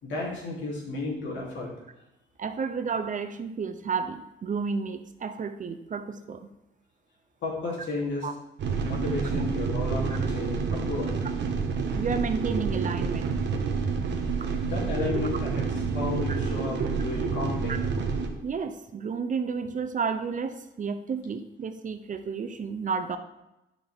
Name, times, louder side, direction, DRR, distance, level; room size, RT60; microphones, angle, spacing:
voice 1, 0.0-1.7 7.4-8.3 8.8-11.2 14.7-15.7 15.9-17.7, left 2 dB, 70° left, -4 dB, 3.1 m, -32 dB
voice 2, 2.4-6.4 8.2-8.3 12.0-13.3 14.4-14.5 16.3-16.4 17.7-17.8 18.4-23.2, right 5 dB, 40° right, 10 dB, 0.6 m, -31 dB
sound 1, 8.6-18.3, right 5 dB, 65° right, 1.3 m, -28 dB
9.2 x 6.0 x 3.6 m, 0.93 s
cardioid pair, 90°, 20 cm